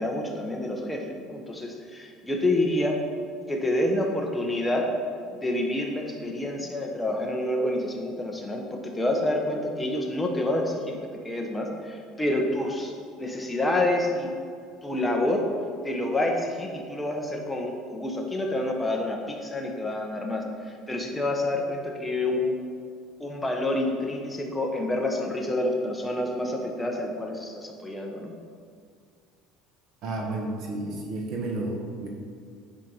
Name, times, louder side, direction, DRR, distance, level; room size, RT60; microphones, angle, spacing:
voice 1, 0.0-3.0 3.5-4.9 5.4-12.9 13.2-14.3 14.8-15.5 15.8-22.6 23.2-28.3, left 1 dB, 10° left, 1 dB, 1.1 m, -28 dB
voice 2, 30.0-32.1, right 2 dB, 55° right, 0 dB, 1.7 m, -31 dB
9.8 x 4.3 x 5.6 m, 2.2 s
cardioid pair, 140°, 0 cm